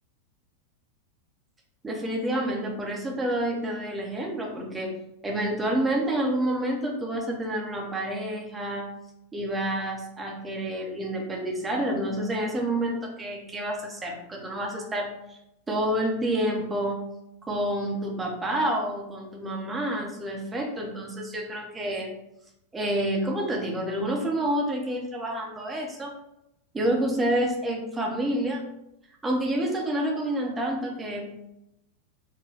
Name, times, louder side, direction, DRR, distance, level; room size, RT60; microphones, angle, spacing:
voice 1, 1.8-4.9 5.2-8.8 9.3-15.4 15.7-17.1 17.5-22.1 22.7-26.1 26.7-28.7 29.2-31.4, right 1 dB, 15° right, -1 dB, 0.7 m, -28 dB
4.9 x 2.2 x 2.9 m, 0.84 s
figure-of-eight pair, 90°, 0 cm